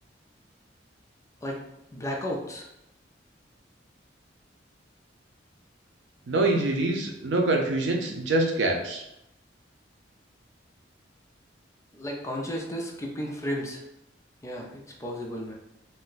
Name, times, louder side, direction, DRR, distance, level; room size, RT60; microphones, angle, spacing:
voice 1, 1.9-2.7 11.9-13.8 14.4-15.5, equal, 15° left, -1 dB, 0.4 m, -33 dB
voice 2, 6.3-9.0, right 2 dB, 75° right, 2 dB, 0.5 m, -25 dB
2.6 x 2.1 x 3.8 m, 0.86 s
head